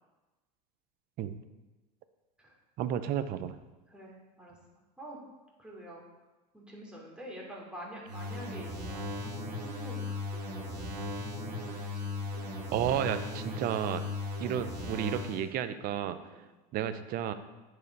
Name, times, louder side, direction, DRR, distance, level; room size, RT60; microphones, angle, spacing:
voice 1, 2.8-3.6 12.7-14.0 14.4-16.2 16.7-17.3, right 10 dB, 45° right, 11 dB, 0.7 m, -32 dB
voice 2, 3.9-4.5 5.0-5.2 5.6-6.0 6.5-11.2 11.5-12.4 16.3-16.4, right 1 dB, 5° right, -4 dB, 2.7 m, -47 dB
sound 1, 8.1-15.5, left 2 dB, 85° right, 2.0 m, -37 dB
9.7 x 5.0 x 4.7 m, 1.2 s
hypercardioid pair, 105°, 21 cm